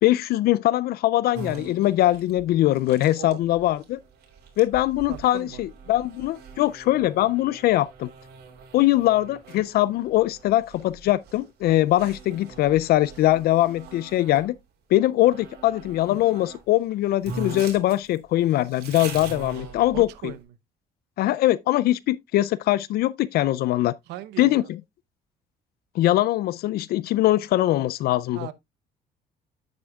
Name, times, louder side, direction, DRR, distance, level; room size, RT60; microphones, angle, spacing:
voice 1, 0.0-4.0 4.6-8.1 8.7-14.6 14.9-20.3 21.2-23.9 24.4-24.8 26.0-28.5, left 15 dB, 65° left, 0.4 m, -22 dB
sound 1, 1.3-14.5 15.2-16.6 16.9-17.0 17.2-20.3, right 4 dB, 70° right, 3.1 m, -42 dB
voice 2, 5.1-5.6 19.9-20.4 24.1-24.7 28.3-28.5, right 13 dB, 90° right, 0.8 m, -38 dB
9.6 x 7.9 x 2.3 m
cardioid pair, 110°, 17 cm